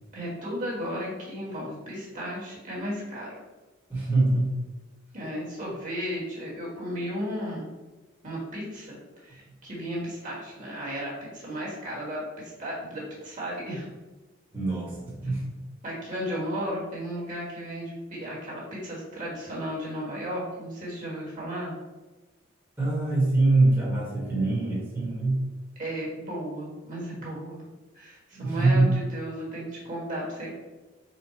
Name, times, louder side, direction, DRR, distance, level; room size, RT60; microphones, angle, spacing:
voice 1, 0.1-3.4 5.1-7.7 8.2-13.9 15.8-21.8 25.8-30.5, equal, 40° right, -5 dB, 1.5 m, -34 dB
voice 2, 3.9-4.5 14.5-15.4 22.8-25.4 28.3-29.0, right 2 dB, 10° right, -9 dB, 1.2 m, -23 dB
4.3 x 2.3 x 4.3 m, 1.2 s
head